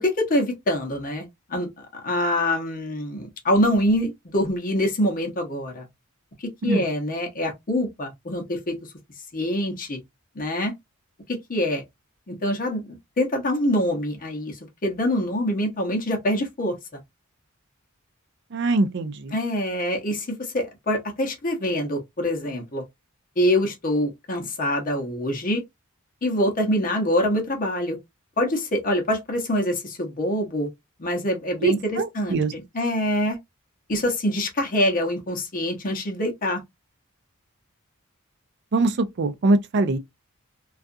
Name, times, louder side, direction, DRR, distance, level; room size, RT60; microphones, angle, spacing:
voice 1, 0.0-5.9 6.4-8.8 9.3-10.0 10.4-10.7 11.3-11.8 12.3-16.7 19.3-22.8 23.4-25.6 26.2-28.0 28.4-30.7 31.0-33.4 33.9-36.6, left 1 dB, 40° left, 0.8 m, -25 dB
voice 2, 18.5-19.3 31.6-32.5 38.7-40.0, right 2 dB, 55° right, 0.5 m, -23 dB
2.4 x 2.3 x 2.5 m
head